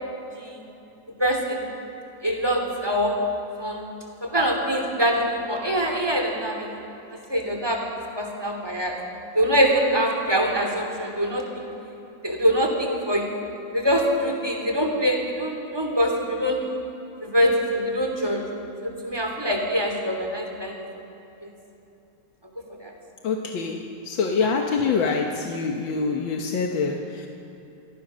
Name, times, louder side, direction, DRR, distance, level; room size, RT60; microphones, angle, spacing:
voice 1, 1.2-1.6 2.2-3.2 3.6-3.9 4.2-6.8 7.3-7.8 8.2-8.9 9.3-11.7 12.2-13.4 13.7-16.8 17.2-18.4 18.8-20.7 22.8-22.9, equal, 10° right, 1 dB, 3.0 m, -24 dB
voice 2, 23.2-23.8 24.1-27.3, left 4 dB, 85° left, 2 dB, 2.0 m, -25 dB
26.5 x 17.5 x 6.3 m, 2.8 s
omnidirectional pair, 2.1 m